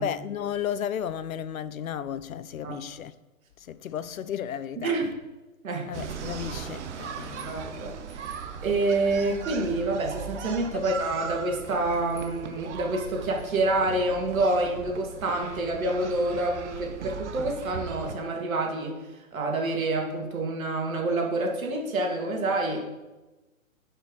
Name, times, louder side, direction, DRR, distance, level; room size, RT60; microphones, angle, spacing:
voice 1, 0.0-3.1 3.7-5.0 5.9-7.6 10.7-10.8, left 9 dB, 70° left, 0.7 m, -33 dB
voice 2, 4.8-5.1 5.6-5.9 7.5-8.2 8.6-19.0 19.3-22.8, right 2 dB, 70° right, 2.6 m, -27 dB
sound 1, 5.9-18.2, right 6 dB, 50° right, 1.1 m, -38 dB
9.4 x 5.6 x 5.2 m
hypercardioid pair, 140°, 43 cm